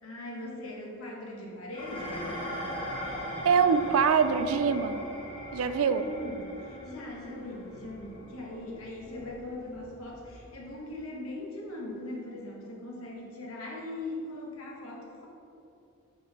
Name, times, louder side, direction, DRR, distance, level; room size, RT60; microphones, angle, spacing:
voice 1, 0.0-2.4 5.7-15.3, left 1 dB, 80° left, -2 dB, 1.4 m, -40 dB
Dishes pots and pans, 1.7-10.6, equal, 25° left, 1.7 m, -40 dB
voice 2, 3.4-5.0 5.5-6.0, right 6 dB, 80° right, 11 dB, 0.4 m, -24 dB
6.2 x 4.0 x 5.8 m, 2.7 s
head